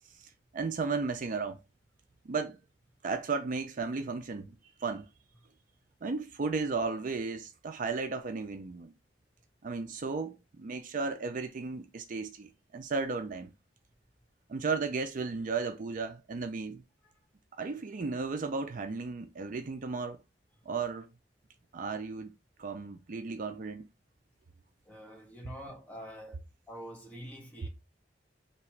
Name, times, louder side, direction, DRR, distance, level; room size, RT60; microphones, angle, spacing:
voice 1, 0.2-1.6 2.2-2.6 3.0-5.1 6.0-8.9 9.6-13.5 14.5-16.8 17.5-20.2 20.7-21.1 21.7-22.3 22.6-23.9, right 4 dB, 50° right, 0.4 m, -34 dB
voice 2, 24.9-27.7, equal, 10° left, 1.2 m, -46 dB
3.0 x 2.8 x 4.5 m
head